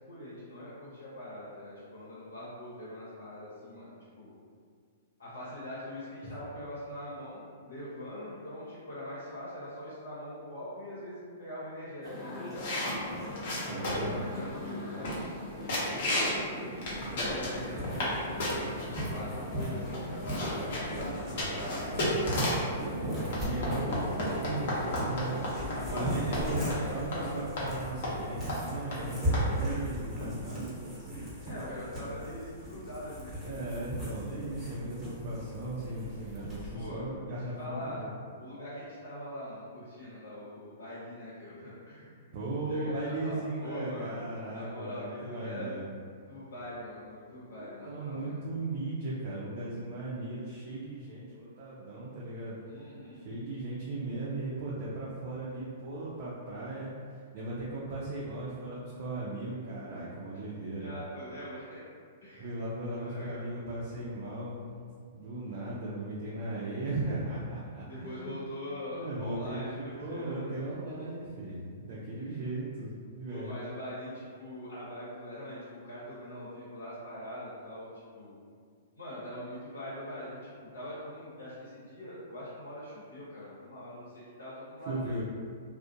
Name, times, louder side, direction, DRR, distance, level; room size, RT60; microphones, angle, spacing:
voice 1, 0.1-4.3 5.2-13.4 13.9-16.7 17.1-22.6 25.9-27.7 29.4-29.9 31.4-33.7 36.7-37.1 37.4-38.0 38.4-42.3 42.7-44.2 44.5-45.8 46.3-48.4 52.6-53.2 60.3-60.4 60.8-61.9 62.2-62.5 62.9-63.4 67.9-70.5 72.2-72.4 73.3-77.9 78.1-78.3 79.0-85.2, left 1 dB, 85° left, -11 dB, 0.8 m, -43 dB
sound 1, 12.0-27.0, left 1 dB, 20° left, 0.8 m, -41 dB
sound 2, 12.6-14.2 14.7-14.8 15.0-15.4 15.7-16.4 16.8-18.1 18.4-19.0 19.6-19.7 19.9-22.7 23.3-26.1 26.3-26.4 26.7-26.8 27.1-27.2 27.6-27.7 28.0-28.2 28.5-28.6 28.9-29.0 29.3-29.5, left 1 dB, 55° left, 0.8 m, -33 dB
voice 2, 13.7-14.2 22.7-25.4 25.9-31.2 33.4-38.1 42.3-45.9 47.6-52.6 53.1-60.9 62.4-64.6 65.1-68.3 68.9-73.5 84.9-85.2, right 2 dB, 50° right, -7 dB, 0.4 m, -37 dB
sound 3, 16.9-36.8, equal, 10° right, 1.0 m, -37 dB
2.4 x 2.0 x 2.6 m, 2.1 s
hypercardioid pair, 115°, 0 cm